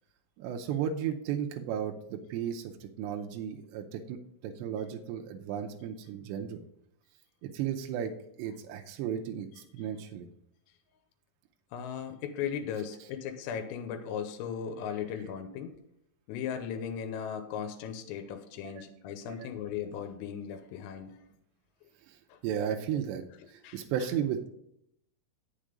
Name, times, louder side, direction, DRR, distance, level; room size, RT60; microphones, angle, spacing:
voice 1, 0.4-6.6 7.4-8.1 8.4-10.3 18.6-18.8 19.3-19.4 22.1-22.2 22.4-23.2 23.5-24.5, right 9 dB, 85° right, 3 dB, 2.5 m, -34 dB
voice 2, 11.7-15.8 16.3-21.2 22.3-22.4 23.6-23.8, left 8 dB, 90° left, 7 dB, 3.5 m, -37 dB
8.8 x 7.3 x 5.0 m, 0.76 s
omnidirectional pair, 5.7 m